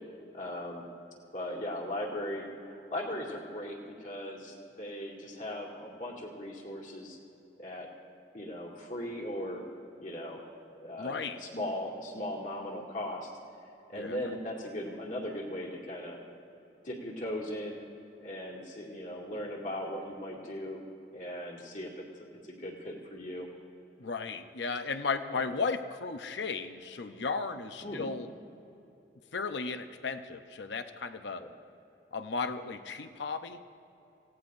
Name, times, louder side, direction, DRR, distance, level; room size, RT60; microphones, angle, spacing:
voice 1, 0.3-0.8 1.3-7.2 7.6-7.9 8.3-9.6 10.0-10.4 10.8-13.3 13.9-16.2 16.8-17.8 18.2-20.8 21.1-23.5 25.3-25.5 27.8-28.1 31.4-31.5, left 1 dB, 45° left, -2 dB, 2.4 m, -38 dB
voice 2, 11.0-11.4 13.9-14.2 24.0-28.3 29.3-31.4 32.1-33.6, left 4 dB, 80° left, 8 dB, 0.7 m, -35 dB
28.0 x 17.0 x 2.6 m, 2.9 s
head